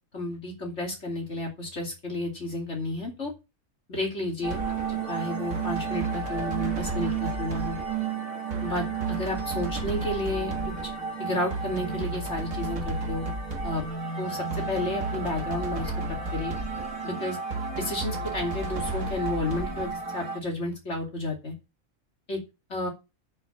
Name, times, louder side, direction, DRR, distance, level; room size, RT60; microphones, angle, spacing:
voice 1, 0.1-3.3 3.9-4.6 4.9-7.8 8.6-10.5 10.8-10.9 11.2-13.3 13.6-13.8 14.2-15.9 16.3-16.5 17.0-17.4 17.8-21.5 22.3-22.4 22.7-22.9, left 1 dB, 55° left, 0 dB, 3.1 m, -31 dB
sound 1, 4.4-20.4, right 4 dB, 75° right, 2.3 m, -31 dB
8.2 x 5.6 x 7.0 m, 0.26 s
omnidirectional pair, 1.5 m